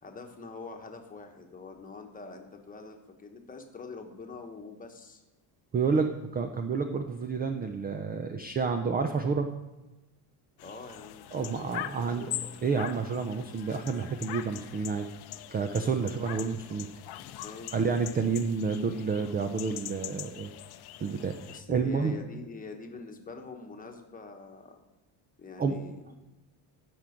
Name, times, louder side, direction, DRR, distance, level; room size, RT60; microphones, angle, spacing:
voice 1, 0.0-5.2 10.6-12.6 15.7-16.0 17.4-17.7 21.5-24.8 25.4-26.1, left 4 dB, 20° left, 4 dB, 1.2 m, -45 dB
voice 2, 5.7-9.5 11.3-12.3 12.6-15.1 15.5-16.9 17.7-20.5 21.0-21.4 21.7-22.1 25.6-25.8, right 5 dB, 20° right, 6 dB, 0.4 m, -29 dB
sound 1, 10.6-21.6, left 13 dB, 55° left, 0.7 m, -43 dB
15.5 x 6.1 x 5.1 m, 1.1 s
cardioid pair, 155°, 46 cm